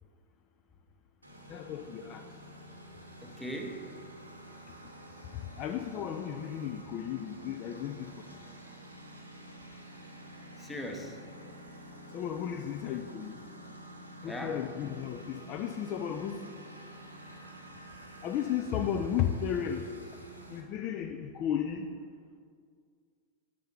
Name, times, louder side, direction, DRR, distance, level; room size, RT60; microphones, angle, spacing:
Engine, 1.2-20.6, right 1 dB, 80° right, 0.9 m, -49 dB
voice 1, 1.5-2.4 5.3-8.4 12.1-13.4 14.2-16.5 18.2-19.9 20.5-21.9, left 9 dB, 40° left, 5 dB, 0.3 m, -34 dB
voice 2, 3.2-3.9 10.6-11.2 14.2-14.6, equal, 5° left, 2 dB, 0.7 m, -39 dB
6.4 x 3.5 x 5.8 m, 2.1 s
figure-of-eight pair, 90°, 0 cm